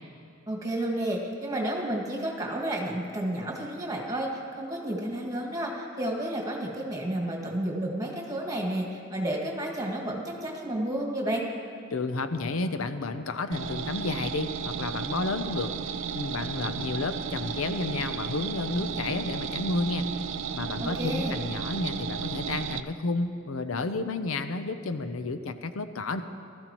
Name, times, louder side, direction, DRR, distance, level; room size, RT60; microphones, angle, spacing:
voice 1, 0.5-11.4 20.8-21.4, right 1 dB, 20° right, -1 dB, 1.9 m, -31 dB
voice 2, 11.9-15.7 16.1-20.1 20.5-26.2, left 3 dB, 85° left, 9 dB, 0.6 m, -31 dB
sound 1, 13.5-22.8, right 6 dB, 70° right, 0.5 m, -34 dB
19.0 x 13.5 x 3.0 m, 2.4 s
head